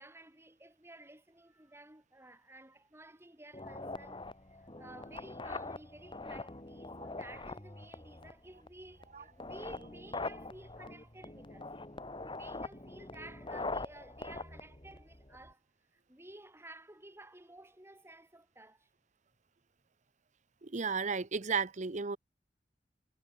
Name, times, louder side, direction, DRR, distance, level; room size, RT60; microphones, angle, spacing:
voice 1, 0.0-11.7 12.2-15.6 15.9-18.9, right 1 dB, 15° right, 6.6 m, -54 dB
sound 1, 3.5-15.5, left 2 dB, 30° left, 2.5 m, -43 dB
voice 2, 20.6-22.2, right 5 dB, 45° right, 0.9 m, -33 dB
head